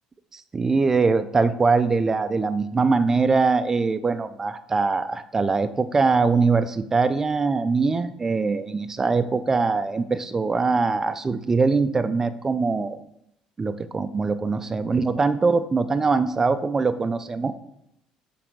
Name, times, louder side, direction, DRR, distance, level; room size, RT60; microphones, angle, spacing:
voice 1, 0.3-13.0 13.6-17.5, right 4 dB, 20° right, 11 dB, 0.4 m, -22 dB
9.3 x 3.4 x 6.0 m, 0.77 s
cardioid pair, 125°, 2 cm